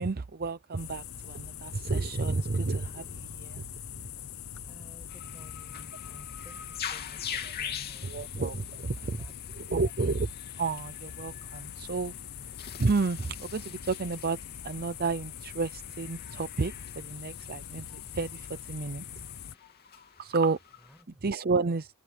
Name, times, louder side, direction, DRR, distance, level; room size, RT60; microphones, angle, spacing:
voice 1, 0.0-3.6 8.0-9.2 9.6-10.3 10.6-12.1 12.8-14.4 14.6-17.9 18.1-19.0 20.2-20.6 21.2-21.9, right 4 dB, 45° right, 0.6 m, -31 dB
sound 1, 0.8-19.5, left 9 dB, 70° left, 0.8 m, -43 dB
voice 2, 4.7-6.6 6.9-8.6 9.0-9.7 20.8-21.2, equal, ahead, 7.0 m, -56 dB
sound 2, 5.1-21.0, left 8 dB, 45° left, 3.0 m, -45 dB
open air
head